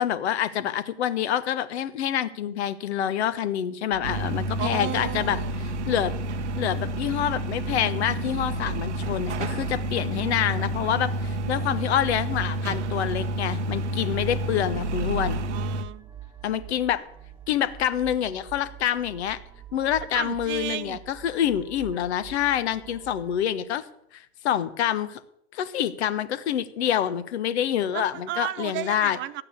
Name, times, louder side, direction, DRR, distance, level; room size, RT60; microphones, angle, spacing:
voice 1, 0.0-5.4 5.9-6.1 6.6-15.4 16.4-17.0 17.5-19.4 19.7-23.8 24.1-25.2 25.5-29.2, left 10 dB, 70° left, 1.2 m, -27 dB
sound 1, 3.9-23.4, right 10 dB, 5° right, 1.3 m, -46 dB
sound 2, 4.0-15.8, right 1 dB, 80° right, 1.0 m, -29 dB
voice 2, 4.6-5.6 15.5-16.1 20.1-21.0 27.9-29.4, right 14 dB, 35° right, 0.5 m, -33 dB
12.0 x 9.0 x 8.2 m
hypercardioid pair, 95°, 34 cm